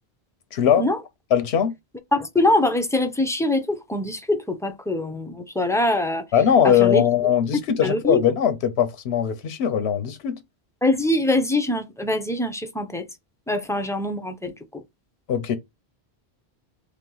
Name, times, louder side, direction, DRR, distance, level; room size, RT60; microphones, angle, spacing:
voice 1, 0.5-0.9 1.3-1.7 6.3-10.4 15.3-15.6, left 8 dB, 85° left, 0.9 m, -20 dB
voice 2, 2.1-6.2 6.6-7.0 7.8-8.2 10.8-13.0 13.5-14.8, left 1 dB, 5° left, 0.4 m, -23 dB
3.5 x 2.9 x 3.8 m
omnidirectional pair, 1.0 m